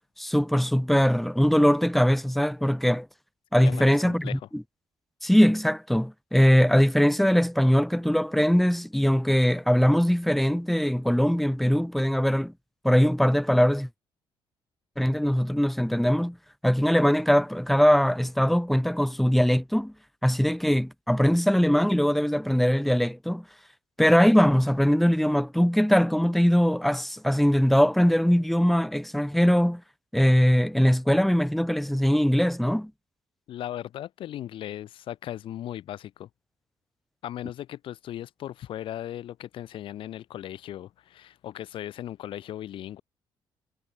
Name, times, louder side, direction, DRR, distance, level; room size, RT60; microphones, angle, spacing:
voice 1, 0.2-3.1 3.5-4.6 5.2-12.5 12.8-13.9 15.0-16.4 16.6-19.9 20.2-23.4 24.0-29.8 30.1-32.9, equal, ahead, 2.2 m, -21 dB
voice 2, 3.6-4.4 33.5-36.3 37.2-43.0, left 12 dB, 70° left, 7.0 m, -37 dB
cardioid pair, 125°, 9 cm